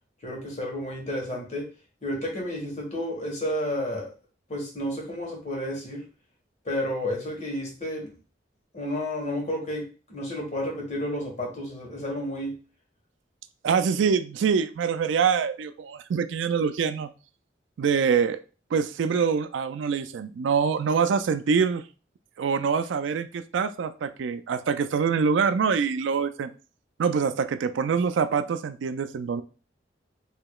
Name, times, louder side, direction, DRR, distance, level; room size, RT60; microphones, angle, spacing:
voice 1, 0.2-1.7 2.0-4.1 4.5-6.0 6.6-8.1 8.7-12.6, left 1 dB, 40° left, 0 dB, 1.4 m, -31 dB
voice 2, 13.6-17.1 17.8-18.4 18.7-21.8 22.4-26.5 27.0-29.4, right 6 dB, 75° right, 10 dB, 0.4 m, -25 dB
4.9 x 2.9 x 2.3 m, 0.35 s
head